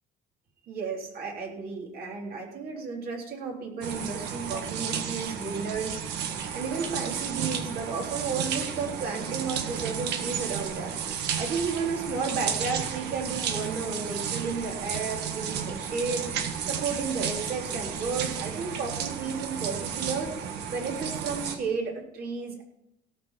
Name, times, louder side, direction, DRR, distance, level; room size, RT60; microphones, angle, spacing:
voice 1, 0.7-11.0 11.4-16.3 16.7-20.3 20.7-22.6, right 4 dB, 65° right, 0 dB, 3.7 m, -33 dB
sound 1, 3.8-21.6, right 8 dB, 80° right, 1.5 m, -33 dB
17.0 x 6.0 x 7.3 m, 0.80 s
cardioid pair, 110°, 17 cm